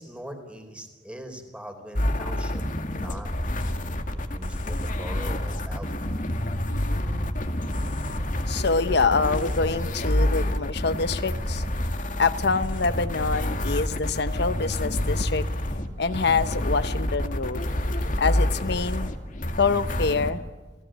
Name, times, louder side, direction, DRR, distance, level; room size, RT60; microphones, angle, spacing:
voice 1, 0.0-3.3 3.7-6.1, right 1 dB, 5° right, 6 dB, 4.1 m, -42 dB
sound 1, 2.0-20.3, left 1 dB, 45° left, 2.2 m, -28 dB
voice 2, 6.7-7.0 8.5-11.6 12.2-15.5 16.0-17.6 18.2-19.1 19.6-20.4, left 4 dB, 60° left, 12 dB, 0.8 m, -25 dB
28.5 x 18.0 x 9.2 m, 1.3 s
head